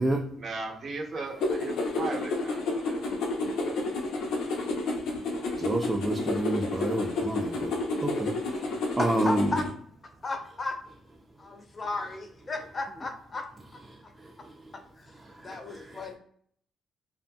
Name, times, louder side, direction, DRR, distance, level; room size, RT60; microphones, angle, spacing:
voice 1, 0.3-3.0, right 3 dB, 55° right, 1 dB, 0.7 m, -37 dB
sound 1, 1.4-9.7, left 2 dB, 85° left, 0.6 m, -30 dB
voice 2, 5.6-9.6 13.9-14.7 15.1-16.1, right 1 dB, 20° right, 1 dB, 0.4 m, -31 dB
voice 3, 9.0-9.6 10.2-10.8 11.4-13.5 13.7-14.1 15.0-15.1 15.4-16.2, left 2 dB, 35° left, 5 dB, 0.5 m, -34 dB
2.6 x 2.6 x 2.2 m, 0.63 s
cardioid pair, 90°, 0 cm